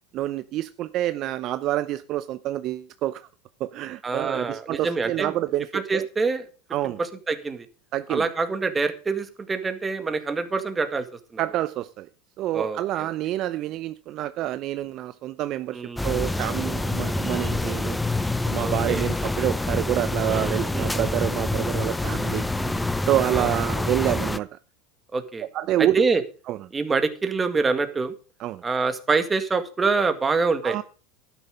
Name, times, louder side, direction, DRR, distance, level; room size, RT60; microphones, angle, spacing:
voice 1, 0.1-3.3 3.6-6.1 6.7-7.0 7.9-8.3 11.4-12.1 12.4-18.0 18.4-22.5 23.1-24.6 25.5-26.0 26.5-26.6 28.4-28.6 30.6-30.8, right 14 dB, 50° right, 0.6 m, -27 dB
voice 2, 4.0-5.4 5.7-6.5 7.0-7.7 8.1-11.1 11.3-11.4 12.5-13.1 15.7-16.1 18.5-19.1 20.7-21.1 22.6-22.9 23.3-23.5 25.1-25.5 25.8-26.2 26.7-28.1 28.6-30.8, right 4 dB, 20° right, 1.9 m, -26 dB
sound 1, 16.0-24.4, left 2 dB, 10° left, 0.6 m, -26 dB
12.5 x 10.0 x 5.2 m
hypercardioid pair, 105°, 0 cm